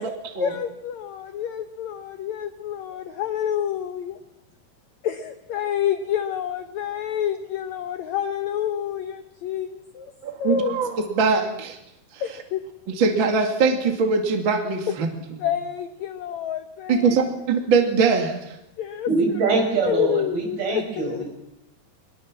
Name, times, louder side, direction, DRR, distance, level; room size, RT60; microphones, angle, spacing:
voice 1, 0.0-4.2 5.0-10.8 12.2-12.6 14.9-15.0 15.4-17.2 18.8-19.1 19.5-19.6 19.8-21.3, left 9 dB, 70° left, 7 dB, 1.8 m, -28 dB
voice 2, 10.2-11.8 12.1-12.2 12.9-15.1 16.9-18.6, right 4 dB, 35° right, 4 dB, 2.4 m, -22 dB
voice 3, 19.1-21.3, right 4 dB, 70° right, 2 dB, 8.0 m, -23 dB
23.5 x 21.0 x 7.3 m, 0.84 s
omnidirectional pair, 4.5 m